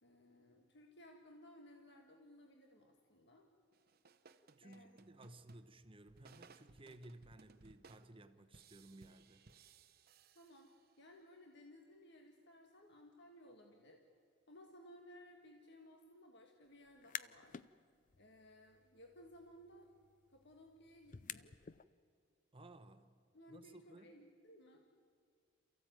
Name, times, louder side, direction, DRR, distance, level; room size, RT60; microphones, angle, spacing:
voice 1, 0.0-3.4 4.6-4.9 10.3-14.0 14.5-17.6 18.2-19.9 20.3-21.5 23.3-24.8, left 1 dB, 60° left, 1.7 m, -60 dB
sound 1, 3.7-11.1, right 4 dB, 50° right, 0.8 m, -64 dB
voice 2, 4.6-9.4 22.5-23.1 23.5-24.2, right 1 dB, 25° right, 1.0 m, -58 dB
sound 2, 16.9-17.7 18.1-21.8, left 9 dB, 40° left, 0.5 m, -52 dB
28.0 x 15.0 x 9.1 m
head